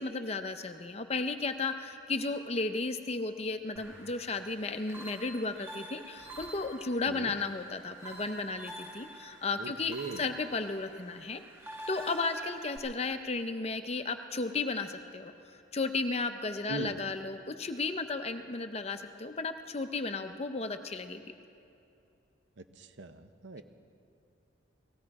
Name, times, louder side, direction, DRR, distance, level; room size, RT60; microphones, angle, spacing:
voice 1, 0.0-11.4 11.9-15.3 15.7-21.2, left 3 dB, 30° left, 8 dB, 0.6 m, -34 dB
sound 1, 3.8-12.8, right 1 dB, 15° right, 1.3 m, -48 dB
voice 2, 9.6-10.3 16.7-17.0 22.6-23.6, right 3 dB, 65° right, 9 dB, 0.8 m, -40 dB
18.5 x 15.5 x 4.8 m, 2.7 s
head